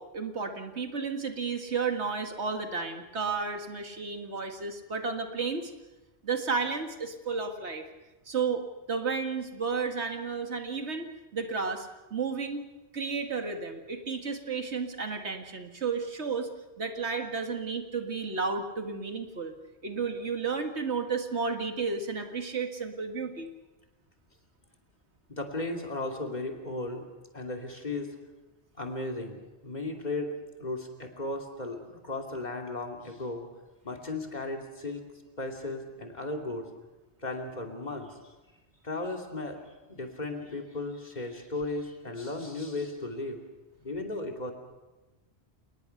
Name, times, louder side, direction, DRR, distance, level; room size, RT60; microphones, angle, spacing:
voice 1, 0.0-5.7 6.2-7.9 8.3-12.6 12.9-16.5 16.8-19.6 19.8-23.5, right 5 dB, 80° right, 5 dB, 2.2 m, -32 dB
voice 2, 25.3-27.0 27.3-28.1 28.8-33.4 33.8-35.0 35.4-36.7 37.2-38.2 38.8-39.6 39.9-43.4 43.8-44.5, left 2 dB, 40° left, 2 dB, 2.9 m, -35 dB
29.0 x 19.5 x 5.9 m, 1.1 s
omnidirectional pair, 1.1 m